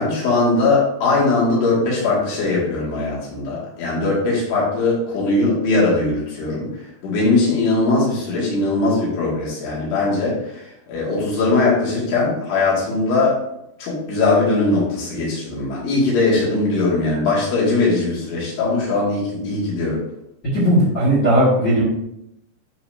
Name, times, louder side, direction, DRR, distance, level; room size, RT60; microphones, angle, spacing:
voice 1, 0.0-13.4 13.8-20.1, left 3 dB, 80° left, -5 dB, 4.4 m, -20 dB
voice 2, 20.4-21.8, right 1 dB, 35° left, -10 dB, 2.1 m, -16 dB
12.0 x 4.1 x 2.8 m, 0.82 s
omnidirectional pair, 4.7 m